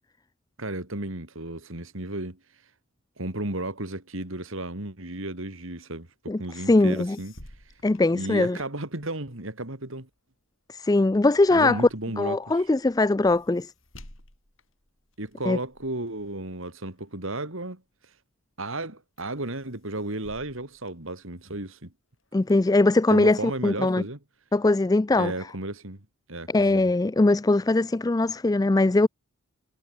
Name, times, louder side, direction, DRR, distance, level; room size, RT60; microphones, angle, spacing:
voice 1, 0.6-2.4 3.2-7.3 8.1-10.1 11.5-12.7 15.2-18.1 18.6-21.9 23.1-24.2 25.1-26.0 26.3-26.8, right 2 dB, 65° right, 3.3 m, -34 dB
voice 2, 6.3-7.2 7.8-8.6 10.7-11.8 12.2-13.7 15.5-15.6 22.3-24.0 24.5-25.3 26.5-29.1, left 2 dB, 15° left, 0.3 m, -21 dB
sound 1, 6.8-8.9 9.3-18.0 18.5-18.9 19.2-21.7 22.1-23.1, left 1 dB, 65° left, 7.9 m, -54 dB
head